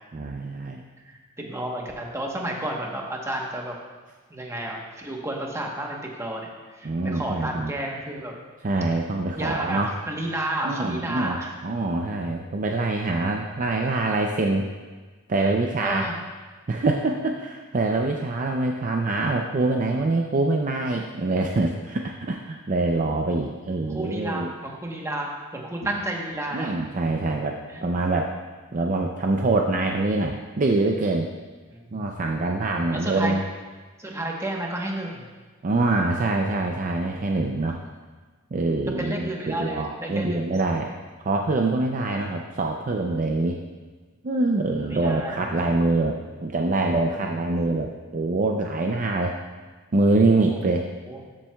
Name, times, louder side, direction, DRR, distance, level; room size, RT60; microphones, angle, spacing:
voice 1, 0.1-0.8 6.8-7.7 8.6-9.9 10.6-11.4 11.6-14.7 15.3-16.1 16.7-24.5 26.5-27.6 27.8-28.3 28.7-31.3 31.9-33.4 35.6-37.8 38.5-40.9 41.2-43.6 44.2-49.3 49.9-50.8, right 2 dB, 35° right, 2 dB, 0.5 m, -24 dB
voice 2, 1.0-3.7 4.3-8.4 9.3-11.5 15.8-16.2 23.9-26.8 27.7-27.8 31.7-32.2 32.9-33.3 34.0-35.3 39.0-40.6 44.9-45.7 50.5-50.6 51.1-51.2, right 1 dB, 15° right, -1 dB, 1.0 m, -31 dB
13.5 x 7.3 x 2.3 m, 1.4 s
head